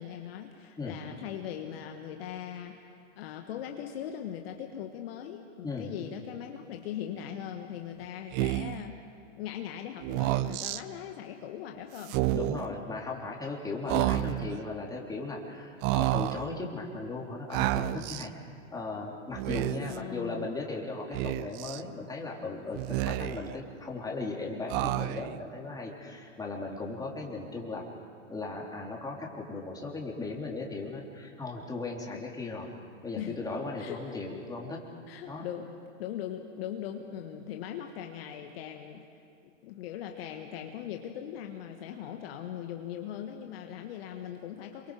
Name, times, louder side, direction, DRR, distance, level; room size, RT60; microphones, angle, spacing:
voice 1, 0.0-2.9 3.1-9.1 9.4-12.8 19.8-20.5 33.2-33.4 33.8-34.2 35.1-35.7 36.0-39.1 39.6-44.9, left 10 dB, 50° left, 4 dB, 1.6 m, -40 dB
voice 2, 5.6-6.0 12.3-18.3 18.7-27.9 28.3-32.7 33.0-34.8 35.3-35.5, left 3 dB, 10° left, -1 dB, 3.5 m, -37 dB
Speech, 8.3-8.8 10.0-10.8 12.0-12.7 13.9-14.6 15.8-16.5 17.5-18.3 19.3-20.0 21.1-21.8 22.7-23.5 24.7-25.4, right 16 dB, 30° right, 0.5 m, -30 dB
27.5 x 23.5 x 5.0 m, 2.4 s
hypercardioid pair, 110°, 37 cm